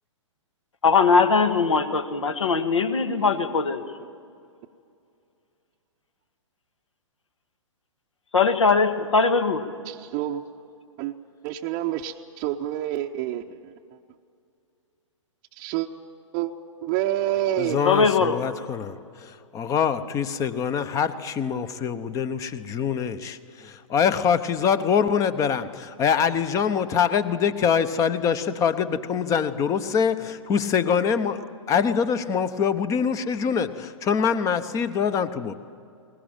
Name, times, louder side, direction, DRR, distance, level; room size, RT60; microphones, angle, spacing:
voice 1, 0.8-3.8 8.3-9.6 17.8-18.4, left 4 dB, 70° left, 9 dB, 1.7 m, -20 dB
voice 2, 9.9-10.4 11.0-11.1 11.4-13.7 15.5-15.9 16.3-16.5 16.8-17.9, right 13 dB, 30° right, 1 dB, 0.8 m, -28 dB
voice 3, 17.6-18.9 19.2-35.5, left 7 dB, 20° left, 14 dB, 0.8 m, -24 dB
21.5 x 19.5 x 9.0 m, 2.4 s
figure-of-eight pair, 120°, 17 cm